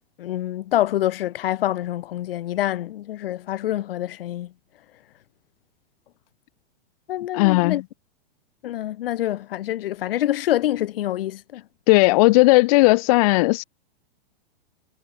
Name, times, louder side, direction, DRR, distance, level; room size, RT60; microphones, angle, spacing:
voice 1, 0.2-4.5 7.1-7.8 8.6-11.6, left 13 dB, 75° left, 1.5 m, -26 dB
voice 2, 7.3-7.8 11.9-13.6, left 22 dB, 40° left, 0.4 m, -16 dB
supercardioid pair, 150°, 29 cm